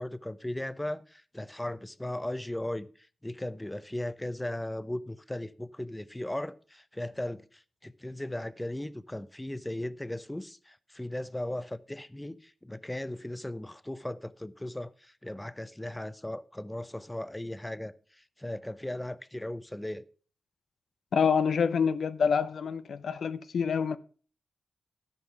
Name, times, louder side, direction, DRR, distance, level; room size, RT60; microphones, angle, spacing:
voice 1, 0.0-2.9 3.2-17.9 18.4-20.0, left 1 dB, 10° left, 0.7 m, -37 dB
voice 2, 21.1-24.0, left 6 dB, 80° left, 0.6 m, -27 dB
13.5 x 5.5 x 6.0 m
cardioid pair, 60°, 0 cm